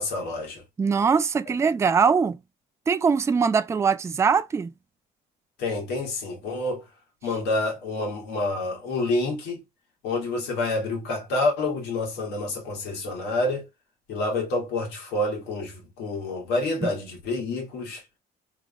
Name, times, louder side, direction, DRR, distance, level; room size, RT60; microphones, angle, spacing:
voice 1, 0.0-0.6 5.6-6.8 7.2-9.6 10.0-13.6 14.1-18.0, left 2 dB, 90° left, 1.9 m, -28 dB
voice 2, 0.8-2.4 2.9-4.7 16.8-16.9, right 5 dB, 15° right, 0.3 m, -22 dB
3.6 x 3.1 x 2.3 m
cardioid pair, 110°, 17 cm